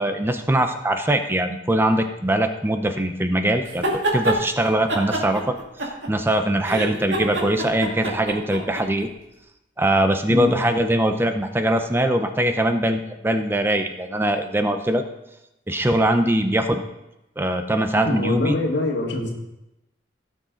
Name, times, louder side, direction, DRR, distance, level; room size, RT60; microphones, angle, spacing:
voice 1, 0.0-5.6 5.8-9.1 9.8-15.0 15.7-16.8 17.4-18.5, right 1 dB, 10° right, 6 dB, 0.6 m, -22 dB
sound 1, 3.7-4.4 4.9-6.3 6.6-8.8, right 1 dB, 80° right, 2.3 m, -25 dB
voice 2, 10.3-10.6 18.0-19.3, left 2 dB, 70° left, 0 dB, 1.9 m, -24 dB
17.0 x 6.4 x 3.9 m, 0.90 s
head